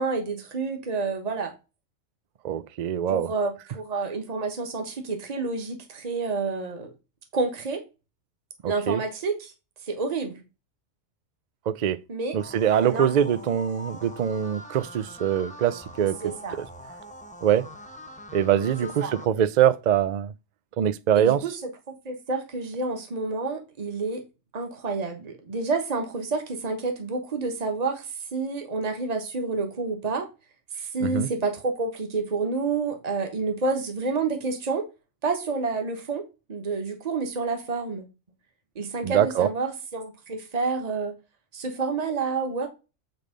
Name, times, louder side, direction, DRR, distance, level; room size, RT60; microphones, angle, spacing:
voice 1, 0.0-1.5 3.1-6.9 7.3-7.8 8.6-9.5 9.9-10.4 12.1-12.4 12.8-13.1 16.2-16.6 18.8-19.1 21.1-21.6 22.0-24.2 24.5-28.1 28.3-30.3 30.7-34.8 35.2-36.2 36.5-38.1 38.7-41.1 41.5-42.7, right 4 dB, 30° right, 1.3 m, -29 dB
voice 2, 2.4-3.3 8.6-9.0 11.7-12.0 12.3-16.7 17.4-17.7 18.3-20.3 20.8-21.4 31.0-31.3 39.0-39.5, right 9 dB, 60° right, 0.4 m, -23 dB
sound 1, 12.4-19.3, equal, 5° left, 1.0 m, -43 dB
9.1 x 3.3 x 5.1 m
omnidirectional pair, 1.3 m